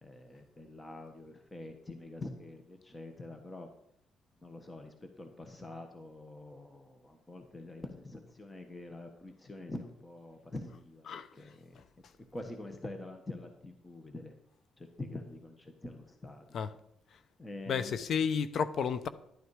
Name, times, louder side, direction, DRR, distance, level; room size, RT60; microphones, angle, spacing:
voice 1, 0.0-3.7 4.4-11.8 12.3-14.3 14.8-16.6 17.4-18.0, left 2 dB, 20° left, 5 dB, 1.4 m, -45 dB
voice 2, 17.7-19.1, left 6 dB, 60° left, 14 dB, 0.8 m, -32 dB
11.0 x 9.5 x 4.9 m, 0.74 s
cardioid pair, 90°, 0 cm